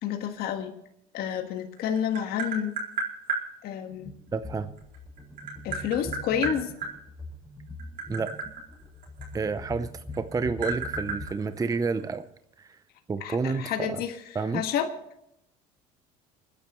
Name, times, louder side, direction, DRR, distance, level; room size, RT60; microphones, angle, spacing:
voice 1, 0.0-0.7 1.1-2.8 3.6-4.1 5.6-6.7 13.2-14.1 14.5-14.9, left 9 dB, 60° left, 5 dB, 1.6 m, -29 dB
Tap, 1.6-3.4 4.8-6.9 7.7-9.8 10.1-12.1, right 4 dB, 50° right, 4.3 m, -33 dB
sound 1, 3.9-11.3, left 2 dB, 10° left, 4.9 m, -42 dB
voice 2, 4.3-4.7 8.1-8.3 9.3-12.2 12.6-12.7 13.1-14.0 14.3-14.6, right 4 dB, 20° right, 11 dB, 0.7 m, -29 dB
29.5 x 10.0 x 3.1 m, 0.78 s
supercardioid pair, 90°, 18 cm